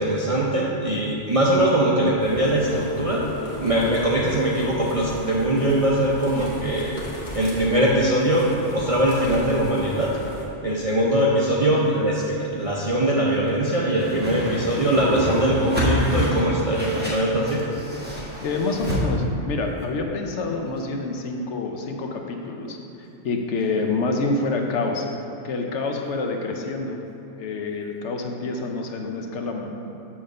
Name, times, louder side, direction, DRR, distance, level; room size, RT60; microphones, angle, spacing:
voice 1, 0.0-3.3 3.6-7.0 7.3-10.2 10.6-17.6, right 1 dB, 40° right, -5 dB, 0.5 m, -21 dB
sound 1, 2.2-10.5, left 1 dB, 40° left, 1.2 m, -37 dB
Whoosh swoosh swish, 14.0-19.0, left 1 dB, 10° right, 1.3 m, -27 dB
voice 2, 18.4-25.0 25.4-27.0 27.4-29.7, left 3 dB, 65° left, 2 dB, 0.9 m, -27 dB
7.1 x 3.5 x 6.4 m, 2.7 s
omnidirectional pair, 1.4 m